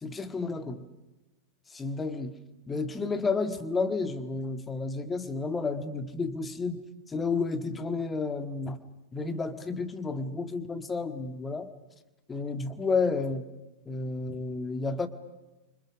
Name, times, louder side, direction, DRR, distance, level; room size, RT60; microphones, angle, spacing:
voice 1, 0.0-0.8 1.7-2.3 2.7-6.8 7.1-8.8 9.1-11.7 12.3-13.4 13.9-15.1, left 4 dB, 15° left, 9 dB, 1.7 m, -31 dB
30.0 x 25.5 x 6.3 m, 1.0 s
figure-of-eight pair, 90°, 0 cm